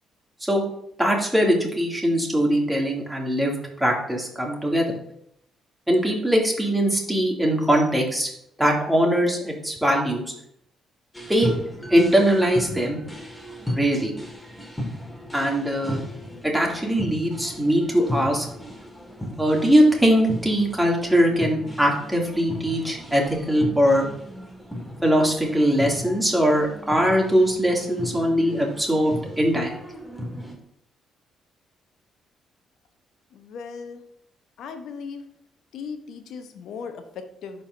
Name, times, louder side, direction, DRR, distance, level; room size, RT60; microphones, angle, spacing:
voice 1, 1.0-5.0 5.9-8.3 8.6-10.3 11.3-11.5 11.9-13.0 13.7-14.1 15.3-16.0 16.4-18.5 19.4-24.1 25.0-29.8, equal, 10° right, -1 dB, 2.6 m, -21 dB
sound 1, 11.1-30.6, left 1 dB, 5° left, 1.9 m, -36 dB
voice 2, 33.3-34.0 34.6-35.3 35.7-37.6, left 5 dB, 65° left, 8 dB, 0.9 m, -37 dB
11.5 x 4.7 x 2.7 m, 0.71 s
hypercardioid pair, 45°, 0 cm